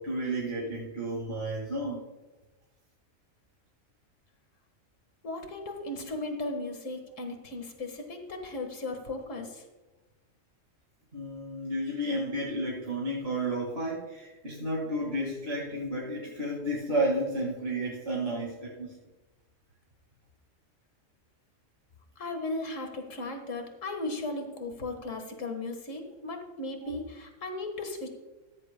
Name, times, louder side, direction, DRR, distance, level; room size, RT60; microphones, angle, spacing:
voice 1, 0.0-2.0 11.1-19.0, right 1 dB, 45° right, -5 dB, 2.3 m, -32 dB
voice 2, 5.2-9.6 22.2-28.1, left 2 dB, 65° left, 5 dB, 1.9 m, -36 dB
16.0 x 14.0 x 2.2 m, 1.1 s
omnidirectional pair, 1.4 m